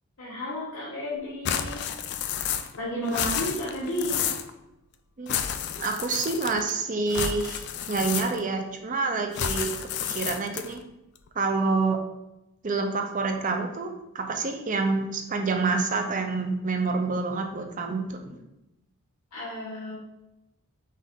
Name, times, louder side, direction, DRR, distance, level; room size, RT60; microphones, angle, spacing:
voice 1, 0.2-1.9 2.7-4.2 19.3-20.0, equal, 85° left, -7 dB, 1.1 m, -32 dB
sound 1, 1.4-2.8 3.0-4.5 5.3-6.7 7.1-8.6 9.3-10.8, left 8 dB, 50° left, 0.3 m, -30 dB
voice 2, 5.8-10.8 11.3-12.0 12.6-18.4, right 4 dB, 35° right, 4 dB, 0.5 m, -28 dB
5.5 x 2.5 x 3.6 m, 0.91 s
head